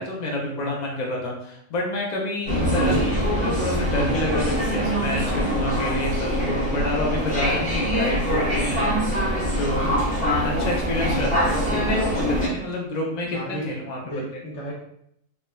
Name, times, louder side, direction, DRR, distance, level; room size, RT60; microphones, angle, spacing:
voice 1, 0.0-10.0 10.4-14.4, left 1 dB, 85° left, -2 dB, 0.3 m, -29 dB
sound 1, 2.5-12.5, equal, 10° left, 0.5 m, -23 dB
voice 2, 13.3-13.7 14.0-14.7, equal, 65° left, -3 dB, 1.0 m, -34 dB
3.3 x 2.0 x 2.2 m, 0.72 s
omnidirectional pair, 1.4 m